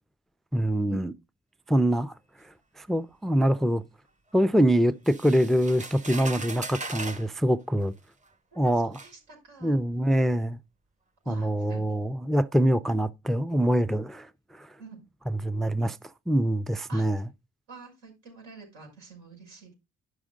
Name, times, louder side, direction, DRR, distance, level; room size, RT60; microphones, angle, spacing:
voice 1, 0.5-1.1 1.7-2.1 2.8-3.8 4.3-7.9 8.6-9.0 9.6-10.6 11.3-14.3 14.6-14.7 15.3-16.0 16.3-17.3, right 1 dB, ahead, 0.4 m, -24 dB
sound 1, 5.0-7.3 8.2-8.3 8.9-9.1, right 3 dB, 25° right, 0.9 m, -38 dB
voice 2, 8.6-9.8 11.2-11.8 14.8-15.0 16.9-17.1 17.7-19.7, right 4 dB, 85° right, 5.7 m, -47 dB
9.9 x 6.2 x 3.7 m
cardioid pair, 90°, 30 cm